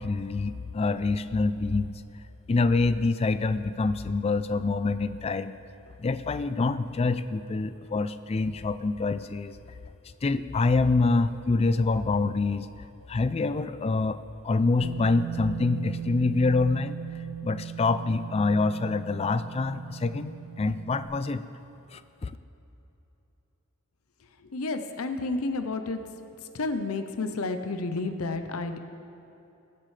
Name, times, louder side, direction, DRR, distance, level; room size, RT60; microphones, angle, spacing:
voice 1, 0.0-1.9 2.5-5.6 6.0-9.6 10.2-12.7 13.1-14.2 14.4-17.0 17.4-21.4 21.9-22.3, left 3 dB, 30° left, 13 dB, 0.3 m, -26 dB
Bass guitar, 14.8-21.1, right 9 dB, 55° right, 1.1 m, -38 dB
voice 2, 24.5-26.1 26.5-28.8, left 3 dB, 85° left, 8 dB, 0.7 m, -31 dB
22.0 x 7.5 x 3.3 m, 3.0 s
head